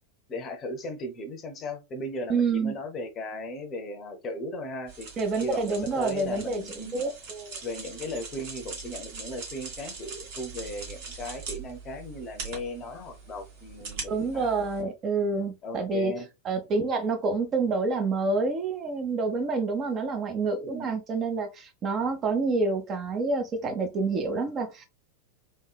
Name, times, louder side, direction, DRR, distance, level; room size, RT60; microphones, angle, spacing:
voice 1, 0.3-5.1 5.4-7.1 7.6-14.5 15.2-16.3 20.6-21.0, left 1 dB, 30° left, 0.7 m, -37 dB
voice 2, 2.3-2.8 5.2-7.6 14.1-16.1 16.4-24.9, right 4 dB, 30° right, 0.7 m, -28 dB
sound 1, 4.9-14.8, right 5 dB, 50° right, 1.4 m, -42 dB
3.7 x 2.6 x 2.2 m
figure-of-eight pair, 90°, 0 cm